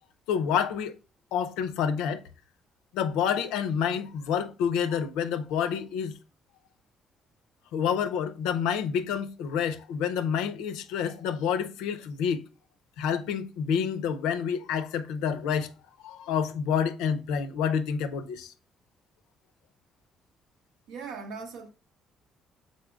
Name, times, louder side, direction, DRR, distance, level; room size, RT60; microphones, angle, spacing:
voice 1, 0.3-1.0 1.3-2.2 2.9-6.1 7.7-12.4 13.0-15.7 16.0-18.5, left 7 dB, 90° left, 0.4 m, -28 dB
voice 2, 20.9-21.7, right 5 dB, 85° right, 0.7 m, -39 dB
4.9 x 4.0 x 2.3 m
supercardioid pair, 75°, 0 cm